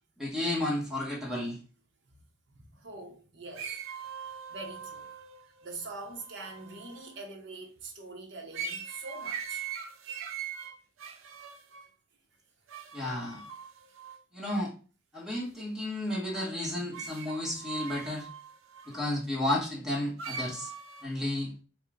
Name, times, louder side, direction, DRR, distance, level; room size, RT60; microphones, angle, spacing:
voice 1, 0.2-1.6 12.9-13.4 14.3-14.7 15.1-18.3 18.9-20.7 21.0-21.5, left 1 dB, ahead, 1.3 m, -32 dB
voice 2, 2.7-3.8 4.2-5.1 5.6-9.7, right 3 dB, 60° right, 0.9 m, -44 dB
sound 1, 3.6-7.2 8.5-11.9 12.7-14.2 16.9-19.0 20.2-21.0, right 6 dB, 85° right, 0.7 m, -41 dB
5.4 x 2.3 x 3.8 m
head